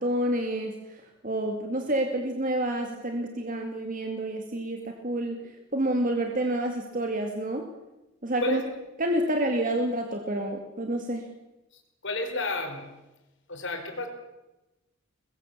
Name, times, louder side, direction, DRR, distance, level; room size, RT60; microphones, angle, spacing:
voice 1, 0.0-7.7 8.2-8.6 9.0-11.3, right 1 dB, 40° right, 4 dB, 2.1 m, -29 dB
voice 2, 12.0-12.9 13.5-14.1, left 2 dB, 60° left, 5 dB, 4.4 m, -31 dB
23.0 x 21.0 x 7.3 m, 1.0 s
head